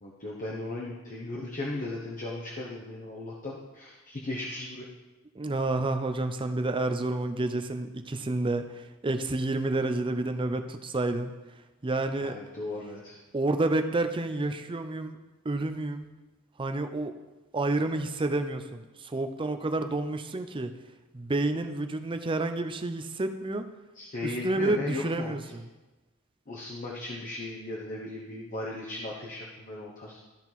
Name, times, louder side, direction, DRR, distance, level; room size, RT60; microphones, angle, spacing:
voice 1, 0.0-4.9 12.2-13.2 23.9-25.3 26.5-30.2, left 2 dB, 40° left, -3 dB, 1.0 m, -37 dB
voice 2, 5.3-11.3 11.8-12.4 13.3-15.2 15.4-16.1 16.6-17.1 17.5-20.7 21.1-23.6 24.2-25.6, right 2 dB, 25° right, 7 dB, 0.5 m, -29 dB
13.0 x 4.5 x 4.1 m, 1.1 s
head